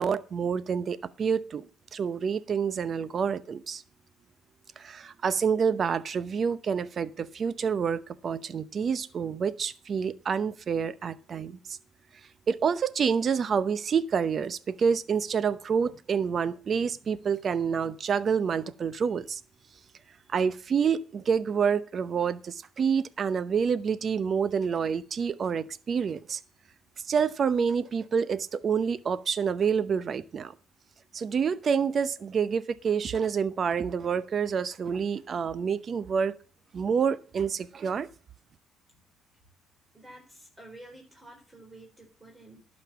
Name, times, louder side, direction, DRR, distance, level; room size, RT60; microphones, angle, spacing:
voice 1, 0.0-1.7 1.9-3.8 4.8-11.8 12.5-19.4 20.3-26.4 27.1-30.5 31.1-36.3 36.7-38.1, right 6 dB, 50° right, 17 dB, 0.7 m, -28 dB
voice 2, 39.9-42.7, right 1 dB, 15° right, 1 dB, 4.1 m, -50 dB
11.5 x 5.3 x 7.3 m, 0.40 s
supercardioid pair, 70°, 0 cm